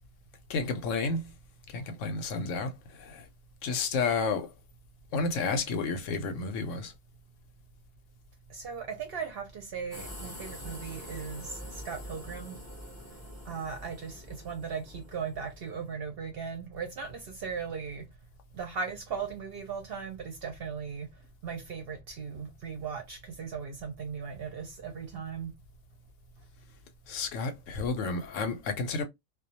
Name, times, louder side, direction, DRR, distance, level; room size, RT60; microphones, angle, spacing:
voice 1, 0.5-1.3 1.7-2.7 3.0-3.2 3.6-4.5 5.1-6.9 27.1-29.0, left 4 dB, 70° left, 0.9 m, -31 dB
voice 2, 8.5-12.6 13.5-18.0 18.5-21.1 21.4-25.5, right 6 dB, 60° right, 0.7 m, -38 dB
sound 1, 9.9-15.9, equal, 25° left, 0.4 m, -45 dB
2.3 x 2.1 x 2.7 m
omnidirectional pair, 1.4 m